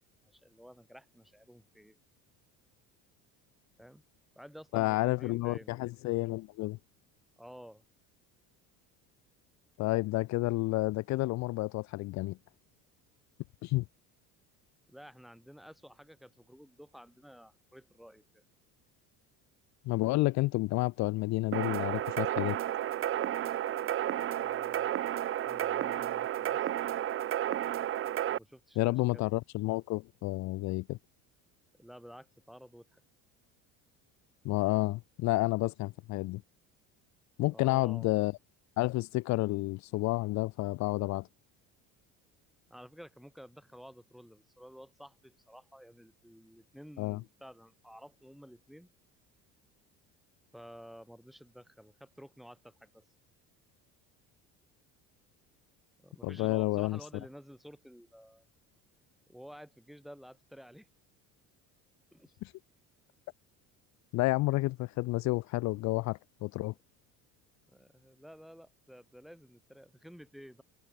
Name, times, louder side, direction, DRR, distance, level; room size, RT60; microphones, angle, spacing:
voice 1, 0.3-2.0 3.8-4.0 4.3-5.9 7.4-7.8 14.9-18.4 24.2-24.9 25.4-26.7 28.3-29.3 31.8-33.0 37.5-38.2 42.7-48.9 50.5-53.0 56.0-58.5 59.3-60.9 62.1-62.3 67.7-70.6, equal, ahead, 6.0 m, -52 dB
voice 2, 4.7-6.8 9.8-12.4 13.6-13.8 19.8-22.6 28.8-31.0 34.4-36.4 37.4-38.3 38.8-41.3 47.0-47.2 56.2-57.0 62.4-62.5 64.1-66.7, left 20 dB, 55° left, 0.8 m, -30 dB
sound 1, 21.5-28.4, right 11 dB, 35° right, 2.1 m, -32 dB
cardioid pair, 165°, 34 cm